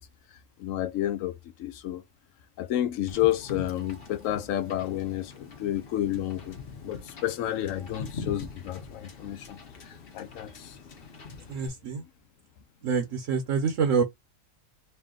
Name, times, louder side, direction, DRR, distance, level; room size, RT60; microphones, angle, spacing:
voice 1, 0.6-2.0 2.6-6.6 6.8-10.8, left 12 dB, 80° left, 1.0 m, -30 dB
Wind / Boat Water vehicle, 3.1-11.7, left 5 dB, 50° left, 1.1 m, -43 dB
voice 2, 11.5-12.0 12.8-14.0, right 6 dB, 75° right, 1.2 m, -26 dB
3.3 x 2.8 x 3.7 m
omnidirectional pair, 1.3 m